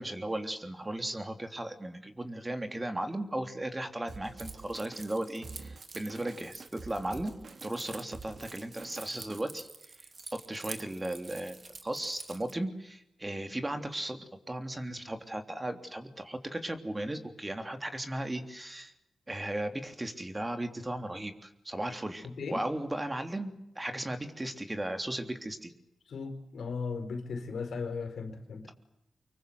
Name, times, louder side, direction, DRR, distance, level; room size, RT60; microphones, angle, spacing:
voice 1, 0.0-7.3 7.6-9.7 10.3-11.6 11.8-18.9 19.3-25.7, right 1 dB, 20° right, 7 dB, 3.3 m, -36 dB
Drum kit, 4.1-9.4, right 4 dB, 65° right, 2.0 m, -48 dB
Keys jangling, 4.4-12.5, right 3 dB, 45° right, 2.6 m, -48 dB
voice 2, 26.1-28.7, left 4 dB, 85° left, 7 dB, 4.4 m, -37 dB
25.5 x 23.5 x 8.0 m, 0.82 s
cardioid pair, 75°, 0 cm